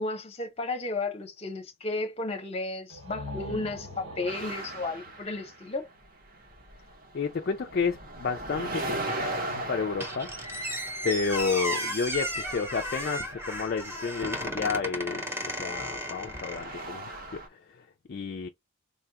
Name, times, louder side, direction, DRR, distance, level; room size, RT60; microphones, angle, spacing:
voice 1, 0.0-5.9, left 2 dB, 30° left, 0.8 m, -33 dB
sound 1, 2.9-6.6, left 1 dB, 80° right, 1.7 m, -43 dB
sound 2, 4.3-6.1 6.3-17.5, right 2 dB, 40° right, 0.8 m, -39 dB
voice 2, 7.1-10.7 11.0-18.5, left 5 dB, 45° left, 0.3 m, -31 dB
Squeak, 10.0-16.9, equal, 10° right, 0.8 m, -34 dB
4.1 x 2.3 x 2.8 m
head